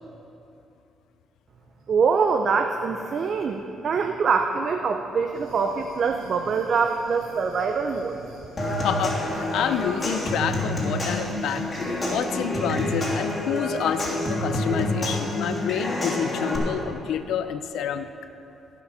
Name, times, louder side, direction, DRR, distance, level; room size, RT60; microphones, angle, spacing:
voice 1, 1.9-8.2, right 5 dB, 55° right, 5 dB, 0.6 m, -24 dB
sound 1, 5.3-12.3, right 2 dB, 90° right, 2.3 m, -47 dB
Human voice / Acoustic guitar / Percussion, 8.6-16.6, left 1 dB, 30° left, 3.2 m, -28 dB
voice 2, 8.8-11.7 12.1-18.1, left 8 dB, 80° left, 10 dB, 0.5 m, -28 dB
17.0 x 6.0 x 5.6 m, 2.8 s
cardioid pair, 90°, 0 cm